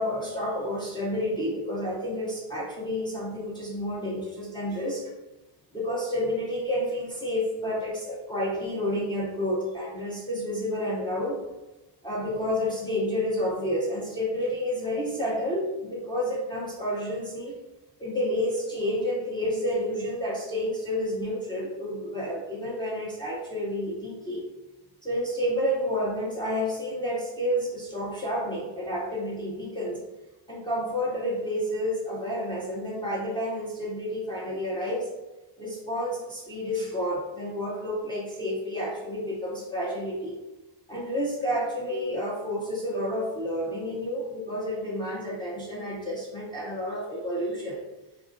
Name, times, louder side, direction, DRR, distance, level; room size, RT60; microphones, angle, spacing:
voice 1, 0.0-5.1 5.7-11.4 12.0-17.5 18.0-24.4 25.0-30.0 30.5-35.1 35.6-40.3 40.9-47.8, equal, 10° left, -8 dB, 0.7 m, -30 dB
4.0 x 2.5 x 2.5 m, 1.1 s
cardioid pair, 130°, 48 cm